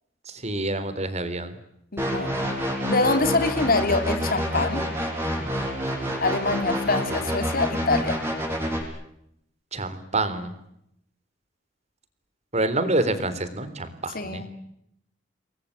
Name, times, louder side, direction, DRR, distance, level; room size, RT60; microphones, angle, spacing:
voice 1, 0.3-1.5 9.7-10.5 12.5-14.4, right 2 dB, 35° right, 11 dB, 3.7 m, -27 dB
voice 2, 1.9-2.4 2.8-4.9 6.2-8.2 14.1-14.5, left 3 dB, 50° left, 9 dB, 3.3 m, -25 dB
sound 1, 2.0-8.8, equal, 15° right, 7.3 m, -28 dB
29.0 x 22.0 x 8.8 m, 0.77 s
head